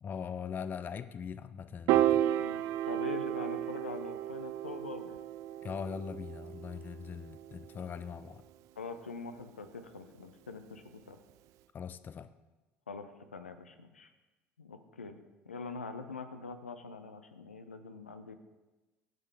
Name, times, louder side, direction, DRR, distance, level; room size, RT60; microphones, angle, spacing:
voice 1, 0.0-2.2 5.6-8.4 11.7-12.3, left 7 dB, 30° left, 14 dB, 0.4 m, -41 dB
Piano, 1.9-8.3, right 12 dB, 55° right, 0.3 m, -33 dB
voice 2, 2.4-5.2 8.8-11.2 12.9-14.1 14.6-15.2 15.5-18.4, left 4 dB, 85° left, 9 dB, 0.5 m, -44 dB
11.0 x 7.6 x 3.3 m, 1.1 s
figure-of-eight pair, 60°, 7 cm